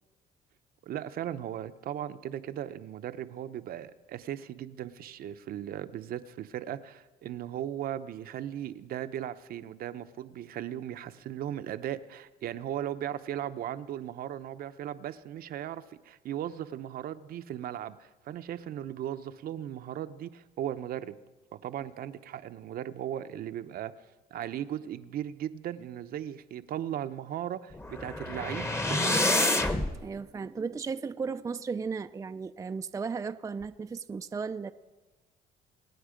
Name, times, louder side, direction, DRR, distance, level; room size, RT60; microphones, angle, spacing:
voice 1, 0.8-21.2 21.6-23.9 24.3-29.3, right 11 dB, 60° right, 10 dB, 0.7 m, -37 dB
sound 1, 27.7-29.9, left 1 dB, 15° left, 1.1 m, -27 dB
voice 2, 30.0-34.7, right 5 dB, 20° right, 9 dB, 0.4 m, -35 dB
26.0 x 9.4 x 5.1 m, 1.2 s
cardioid pair, 110°, 17 cm